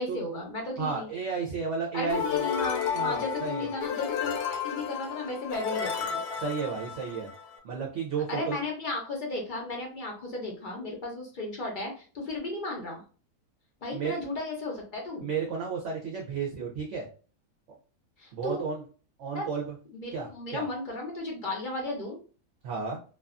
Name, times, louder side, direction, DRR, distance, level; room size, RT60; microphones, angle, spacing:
voice 1, 0.0-1.1 1.9-6.2 8.3-13.0 13.8-15.3 18.2-18.6 19.3-19.5 20.0-22.2, left 2 dB, 55° left, 0 dB, 0.5 m, -35 dB
voice 2, 0.8-2.4 2.9-3.7 6.4-7.3 7.6-8.6 13.9-14.2 15.2-17.1 18.3-18.8 19.2-19.6 20.1-20.6 22.6-23.0, right 5 dB, 65° right, -1 dB, 0.8 m, -32 dB
sound 1, 2.1-7.6, left 7 dB, 80° left, 1.1 m, -32 dB
2.6 x 2.3 x 2.4 m, 0.38 s
omnidirectional pair, 1.7 m